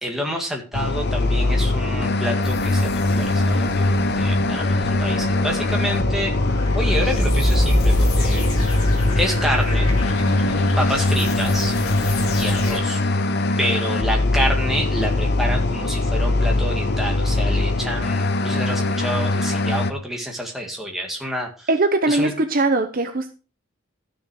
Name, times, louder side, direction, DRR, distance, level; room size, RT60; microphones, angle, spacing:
voice 1, 0.0-6.3 6.7-8.9 9.2-9.9 10.8-11.7 12.3-13.0 13.6-21.7 22.1-22.3, equal, ahead, 0 dB, 1.9 m, -28 dB
sound 1, 0.7-19.9, left 2 dB, 50° left, 0.7 m, -22 dB
sound 2, 2.4-12.8, left 1 dB, 80° left, 2.8 m, -24 dB
voice 2, 21.7-23.3, right 2 dB, 40° right, 7 dB, 0.8 m, -20 dB
12.5 x 6.6 x 4.7 m, 0.35 s
head